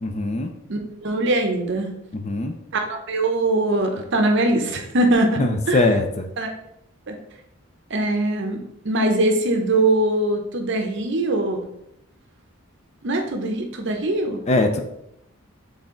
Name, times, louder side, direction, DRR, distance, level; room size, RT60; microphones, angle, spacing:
voice 1, 0.0-0.5 2.1-2.5 5.4-6.3 14.5-14.8, left 2 dB, 30° left, 5 dB, 0.4 m, -21 dB
voice 2, 0.7-1.9 2.7-5.4 5.7-5.8 6.4-6.5 7.1-7.2 7.9-11.6 13.0-14.4, right 2 dB, 55° right, 4 dB, 0.7 m, -22 dB
4.2 x 3.4 x 3.7 m, 0.80 s
head